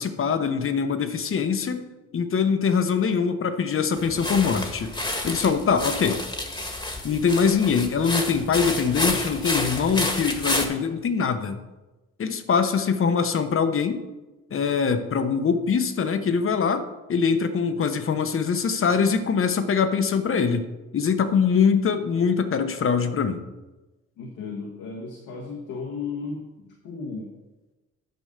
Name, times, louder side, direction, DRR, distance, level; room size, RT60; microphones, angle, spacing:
voice 1, 0.0-1.9 2.1-4.9 5.2-6.2 7.0-11.6 12.2-14.0 14.5-20.7 20.9-23.4, left 6 dB, 45° left, 9 dB, 1.0 m, -23 dB
sound 1, 4.0-10.7, left 2 dB, 15° left, 1.5 m, -29 dB
voice 2, 24.2-27.3, left 4 dB, 90° left, -2 dB, 1.5 m, -35 dB
9.3 x 5.3 x 6.6 m, 1.1 s
cardioid pair, 90°, 30 cm